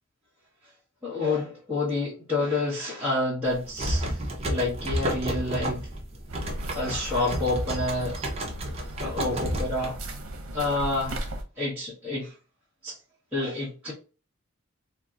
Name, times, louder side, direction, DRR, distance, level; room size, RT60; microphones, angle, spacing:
voice 1, 1.0-5.9 6.7-8.2 9.0-10.0 10.5-11.2 11.6-12.3 12.8-12.9 13.3-13.9, left 2 dB, 5° right, 0.9 m, -28 dB
sound 1, 3.5-10.3, right 1 dB, 30° right, 0.5 m, -31 dB
sound 2, 6.3-11.4, right 1 dB, 75° right, 0.7 m, -37 dB
3.8 x 2.0 x 2.3 m
head